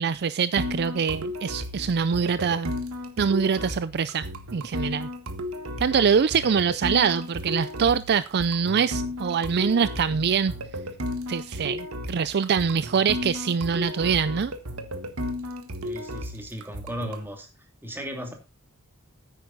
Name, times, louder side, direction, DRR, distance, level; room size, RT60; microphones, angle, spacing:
voice 1, 0.0-2.7 3.2-5.1 5.8-10.5 11.3-14.5, right 6 dB, 50° right, 15 dB, 0.4 m, -24 dB
sound 1, 0.6-17.3, left 1 dB, 70° right, 1.6 m, -34 dB
voice 2, 15.8-18.3, equal, 10° right, 3 dB, 2.5 m, -36 dB
9.8 x 9.1 x 4.0 m, 0.27 s
head